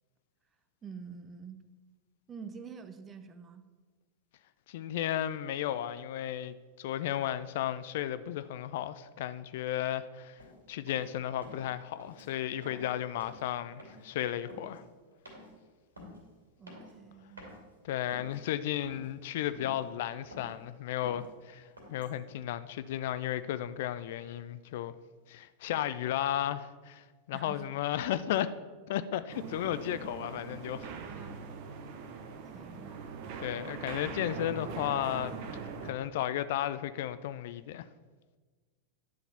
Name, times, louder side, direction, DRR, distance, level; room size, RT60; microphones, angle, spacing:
voice 1, 0.8-1.6 2.3-3.7 16.6-17.5 27.3-27.7 29.1-29.2 31.0-31.4 32.5-32.9, right 6 dB, 20° right, 0.7 m, -47 dB
voice 2, 4.7-10.4 10.7-14.8 17.8-24.9 25.3-28.5 28.9-30.9 33.4-35.4 35.8-37.9, left 11 dB, 55° left, 0.3 m, -34 dB
sound 1, 10.4-10.6 10.9-11.1 11.4-11.7 12.0-12.3 12.6-12.9 13.2-13.5 13.8-14.2 14.5-14.8 15.3-15.5 16.0-16.2 16.7-17.1 17.4-17.6 18.0-18.5 18.8-19.2 19.5-19.8 20.1-20.5 21.0-21.3 21.8-22.2, left 1 dB, 75° right, 2.4 m, -50 dB
sound 2, 29.3-35.9, right 5 dB, 45° right, 0.9 m, -42 dB
10.5 x 3.9 x 6.7 m
figure-of-eight pair, 90°, 0 cm